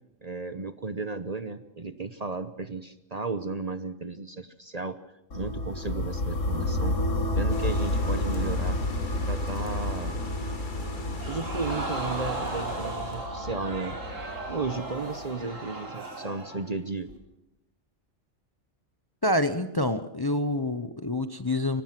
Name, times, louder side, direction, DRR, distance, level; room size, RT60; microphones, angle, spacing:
voice 1, 0.2-5.0 5.3-7.0 7.3-8.8 9.2-10.3 11.3-14.0 14.5-17.1, right 3 dB, 35° right, 11 dB, 0.9 m, -34 dB
sound 1, 5.3-15.2, left 1 dB, 75° left, 2.2 m, -30 dB
sound 2, 7.5-13.3, left 2 dB, 40° left, 2.1 m, -41 dB
Crowd, 11.2-16.7 17.1-17.2, right 2 dB, 90° right, 4.2 m, -36 dB
voice 2, 19.2-21.8, left 1 dB, 20° left, 11 dB, 0.8 m, -27 dB
24.0 x 19.0 x 5.9 m, 0.90 s
omnidirectional pair, 1.3 m